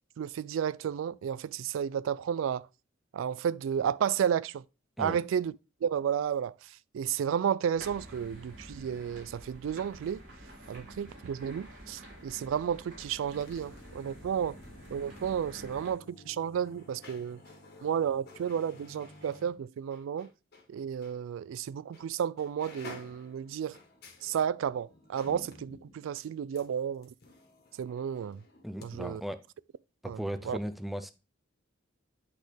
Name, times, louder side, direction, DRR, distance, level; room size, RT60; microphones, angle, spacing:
voice 1, 0.2-2.7 3.1-4.6 5.0-5.5 5.8-10.2 10.7-14.6 14.9-17.4 17.8-20.3 20.7-23.8 24.2-27.1 27.8-28.4 28.8-29.2 30.0-30.6, right 8 dB, 85° right, 0.3 m, -32 dB
sound 1, 7.7-15.9, right 1 dB, 40° right, 3.6 m, -49 dB
sound 2, 12.9-20.7 21.0-21.2 21.9-22.1 22.4-28.9 29.1-29.2, left 2 dB, 55° left, 1.5 m, -53 dB
voice 2, 28.6-29.4 30.0-31.1, equal, ahead, 0.4 m, -36 dB
8.4 x 4.2 x 3.2 m
head